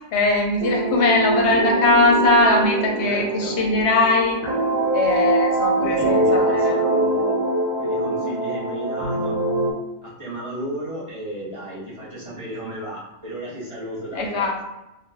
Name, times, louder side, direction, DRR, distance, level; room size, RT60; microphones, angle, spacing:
voice 1, 0.1-4.5 4.9-6.8 14.1-14.5, left 2 dB, 65° left, 1 dB, 0.8 m, -20 dB
sound 1, 0.6-9.7, right 1 dB, 80° right, 1.1 m, -23 dB
voice 2, 3.0-3.5 5.8-7.4 7.8-9.3 10.0-14.5, right 1 dB, 25° right, -9 dB, 0.9 m, -33 dB
2.4 x 2.3 x 3.4 m, 0.94 s
omnidirectional pair, 1.4 m